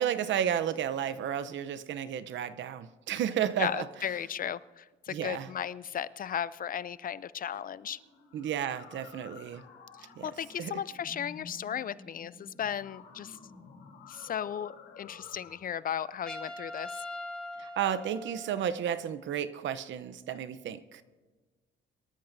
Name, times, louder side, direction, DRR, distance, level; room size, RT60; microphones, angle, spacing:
voice 1, 0.0-3.9 5.1-5.5 8.3-9.6 10.2-10.3 10.6-10.8 17.6-21.0, right 9 dB, 70° right, 13 dB, 0.8 m, -32 dB
voice 2, 3.6-8.0 10.0-13.4 14.1-17.0, left 9 dB, 45° left, 18 dB, 0.5 m, -35 dB
sound 1, 7.5-15.6, left 5 dB, 85° left, 5.0 m, -52 dB
Trumpet, 16.3-18.9, left 1 dB, 5° left, 1.7 m, -42 dB
24.0 x 13.0 x 2.7 m, 1.4 s
cardioid pair, 90°, 20 cm